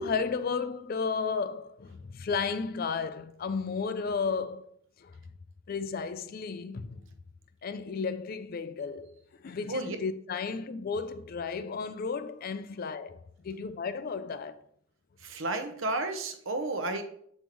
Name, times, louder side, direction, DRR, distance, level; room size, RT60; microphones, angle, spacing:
voice 1, 0.0-5.2 5.7-7.0 7.6-14.6, left 5 dB, 40° left, 0.3 m, -33 dB
voice 2, 15.2-17.0, right 2 dB, 60° right, 0.8 m, -32 dB
7.3 x 5.3 x 3.0 m
head